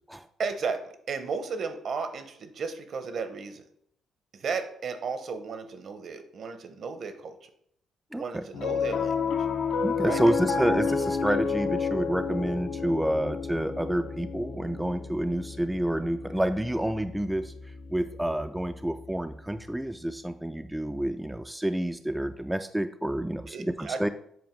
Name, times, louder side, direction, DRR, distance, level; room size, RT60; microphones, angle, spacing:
voice 1, 0.4-0.8 1.1-3.6 4.3-7.5 8.1-9.5 10.0-10.6 23.5-24.0, right 5 dB, 55° right, 8 dB, 0.8 m, -34 dB
voice 2, 8.1-8.4 9.8-17.5 17.9-24.1, right 1 dB, 5° right, 8 dB, 0.3 m, -29 dB
Piano, 8.5-19.0, left 5 dB, 75° left, 0.8 m, -31 dB
7.7 x 2.6 x 5.2 m, 0.69 s
cardioid pair, 90°, 0 cm